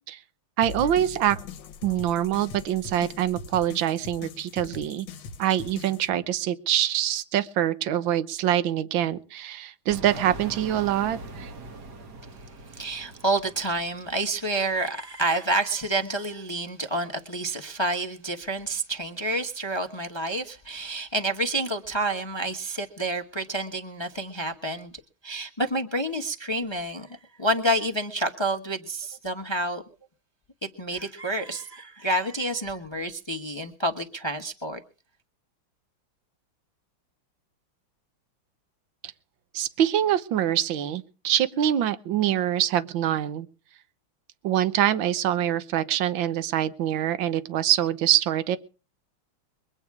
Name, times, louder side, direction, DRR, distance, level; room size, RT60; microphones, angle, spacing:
sound 1, 0.6-6.1, left 5 dB, 70° left, 1.6 m, -40 dB
voice 1, 0.6-1.4 1.8-5.1 5.4-11.5 39.5-43.5 44.4-48.6, right 11 dB, 70° right, 12 dB, 1.6 m, -25 dB
sound 2, 9.9-14.6, right 2 dB, 55° right, 1.7 m, -41 dB
voice 2, 12.7-24.9 25.2-29.8 30.8-34.8, right 1 dB, 20° left, 5 dB, 0.9 m, -29 dB
23.5 x 8.9 x 4.8 m, 0.37 s
omnidirectional pair, 2.3 m